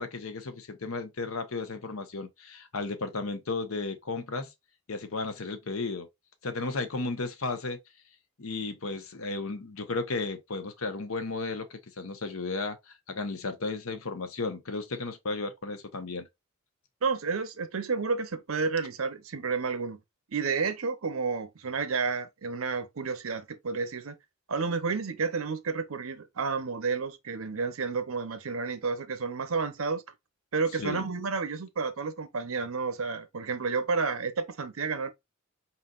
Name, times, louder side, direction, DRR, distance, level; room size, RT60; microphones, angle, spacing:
voice 1, 0.0-4.5 4.9-6.1 6.4-7.8 8.4-16.3 30.8-31.0, left 3 dB, 80° left, 0.9 m, -34 dB
voice 2, 17.0-20.0 20.3-24.1 24.5-30.0 30.5-35.1, right 4 dB, 75° right, 0.8 m, -31 dB
4.3 x 4.0 x 2.4 m
head